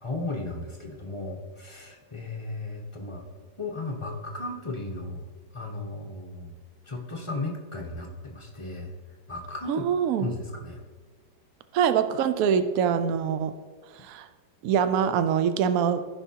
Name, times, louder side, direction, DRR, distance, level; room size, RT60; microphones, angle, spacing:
voice 1, 0.0-3.2 3.6-5.2 5.5-6.6 6.9-8.9 9.3-9.8 10.2-10.8, left 2 dB, 35° left, -1 dB, 0.4 m, -35 dB
voice 2, 9.7-10.3 11.7-13.5 13.9-14.3 14.6-16.0, right 8 dB, 80° right, 10 dB, 0.7 m, -24 dB
14.5 x 5.7 x 2.8 m, 1.5 s
omnidirectional pair, 2.0 m